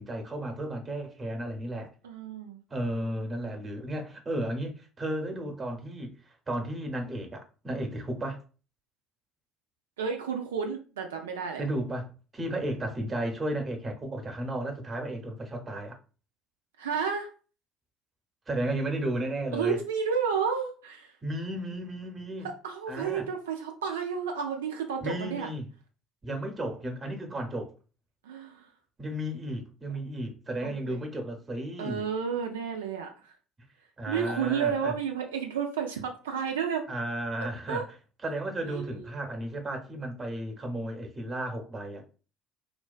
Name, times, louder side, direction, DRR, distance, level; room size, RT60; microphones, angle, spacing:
voice 1, 0.0-1.9 2.7-6.1 6.5-8.4 11.6-16.0 18.5-19.8 21.2-22.5 22.9-23.3 25.0-25.7 26.2-27.7 29.0-32.1 34.0-34.9 36.9-37.8 38.2-42.1, right 1 dB, 25° right, 0.8 m, -34 dB
voice 2, 2.0-2.6 10.0-11.6 16.8-17.3 19.5-21.1 22.4-25.5 28.2-28.7 30.6-31.0 31.8-33.3 34.1-36.8 37.7-37.8 38.7-39.1, right 6 dB, 80° right, 0.3 m, -31 dB
2.4 x 2.2 x 2.3 m
hypercardioid pair, 60°, 0 cm